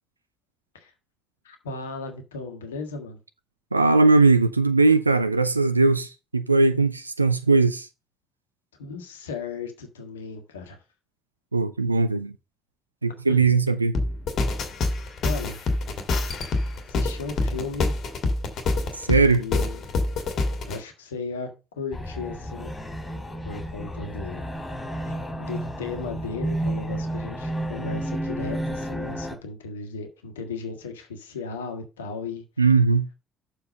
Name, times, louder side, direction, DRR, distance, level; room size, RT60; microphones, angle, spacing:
voice 1, 1.4-3.2 8.8-10.8 13.3-13.5 15.2-15.6 16.9-18.0 19.2-19.8 20.7-22.7 23.4-24.4 25.0-32.4, left 4 dB, 75° left, 1.4 m, -36 dB
voice 2, 3.7-7.9 11.5-12.3 13.0-13.9 19.0-19.4 32.6-33.1, right 3 dB, 90° right, 0.3 m, -19 dB
sound 1, 13.9-20.8, left 2 dB, 50° left, 1.8 m, -26 dB
sound 2, 21.9-29.4, right 1 dB, 20° left, 3.3 m, -31 dB
7.0 x 4.6 x 6.4 m
figure-of-eight pair, 50°, 0 cm